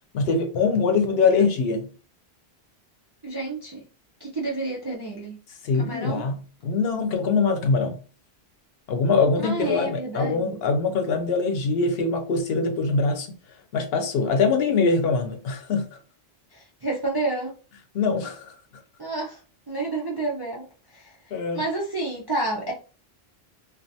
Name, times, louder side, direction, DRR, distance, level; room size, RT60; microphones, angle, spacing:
voice 1, 0.1-1.9 5.6-8.0 8.9-13.3 13.7-16.0 17.9-18.5 21.3-21.6, left 4 dB, 70° left, 0.8 m, -23 dB
voice 2, 3.2-3.8 4.2-5.3 5.8-6.2 9.4-10.6 16.5-17.5 19.0-19.4 19.7-20.6 20.9-21.1 21.5-22.7, right 2 dB, 40° right, 0.3 m, -29 dB
2.4 x 2.3 x 2.6 m
omnidirectional pair, 1.1 m